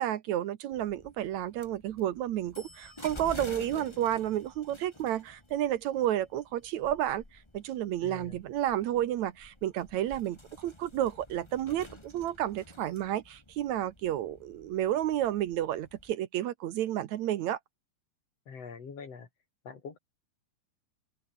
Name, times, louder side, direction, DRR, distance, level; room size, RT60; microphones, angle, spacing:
voice 1, 0.0-17.6, right 12 dB, 75° right, 2.2 m, -31 dB
sound 1, 0.7-16.1, left 1 dB, 10° left, 2.2 m, -50 dB
voice 2, 8.0-8.4 18.5-19.3 19.6-20.0, left 5 dB, 55° left, 4.1 m, -44 dB
omnidirectional pair, 3.5 m